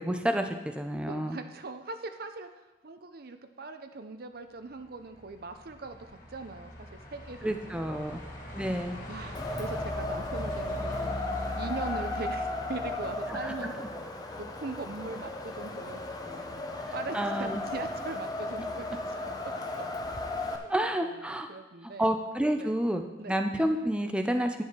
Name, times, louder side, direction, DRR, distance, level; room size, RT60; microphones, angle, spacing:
voice 1, 0.0-1.4 7.4-8.2 8.5-9.0 13.3-13.7 17.1-17.6 20.7-21.5 21.8-23.0 23.3-24.6, right 1 dB, 5° right, 5 dB, 0.6 m, -29 dB
voice 2, 1.1-2.5 2.8-8.1 9.1-11.2 11.6-13.9 14.4-16.6 16.9-19.2 20.5-20.7 21.0-22.1 22.6-22.8 23.2-23.4, right 3 dB, 60° right, 8 dB, 0.7 m, -41 dB
Truck, 4.8-14.2, left 1 dB, 50° left, 2.5 m, -41 dB
Wind, 9.3-20.6, left 2 dB, 20° left, 0.8 m, -35 dB
10.0 x 7.5 x 4.5 m, 1.0 s
head